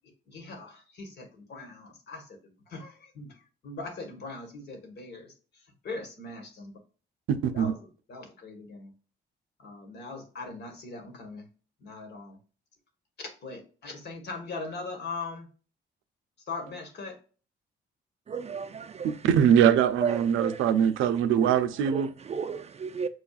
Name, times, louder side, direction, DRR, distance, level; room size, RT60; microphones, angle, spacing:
voice 1, 0.3-2.3 2.7-3.4 3.6-5.3 5.8-6.7 7.5-7.8 8.1-8.9 9.6-11.5 11.8-12.4 13.4-15.5 16.5-17.2, left 3 dB, 60° left, 1.5 m, -40 dB
voice 2, 7.3-7.7 19.0-22.1, right 9 dB, 85° right, 0.5 m, -22 dB
voice 3, 18.3-19.2 20.0-20.6 21.4-21.5 21.9-23.1, right 6 dB, 35° right, 0.4 m, -33 dB
6.2 x 2.3 x 2.4 m
cardioid pair, 90°, 20 cm